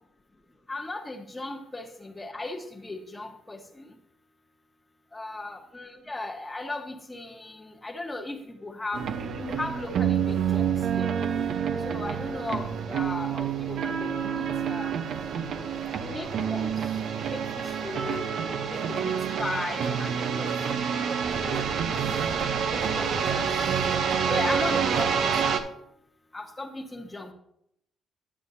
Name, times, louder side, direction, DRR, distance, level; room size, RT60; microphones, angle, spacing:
voice 1, 0.7-3.9 5.1-11.1 11.8-14.9 16.0-16.7 17.1-18.3 18.7-19.1 19.4-20.5 21.3-21.8 22.7-23.5 24.3-25.6 26.3-27.3, left 2 dB, 15° left, 3 dB, 1.3 m, -36 dB
sound 1, 8.9-25.6, right 7 dB, 70° right, 0.8 m, -28 dB
11.0 x 7.2 x 2.7 m, 0.74 s
cardioid pair, 90°, 0 cm